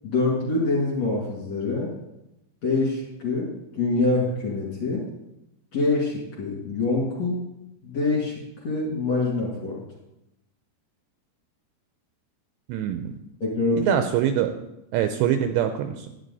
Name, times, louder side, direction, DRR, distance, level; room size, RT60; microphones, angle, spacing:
voice 1, 0.0-1.9 2.6-5.0 5.7-7.4 7.8-9.8 13.4-14.0, left 3 dB, 45° left, -5 dB, 2.8 m, -25 dB
voice 2, 12.7-13.1 13.8-14.5 14.9-16.1, right 10 dB, 80° right, 7 dB, 2.6 m, -24 dB
12.0 x 9.7 x 4.0 m, 0.91 s
omnidirectional pair, 5.5 m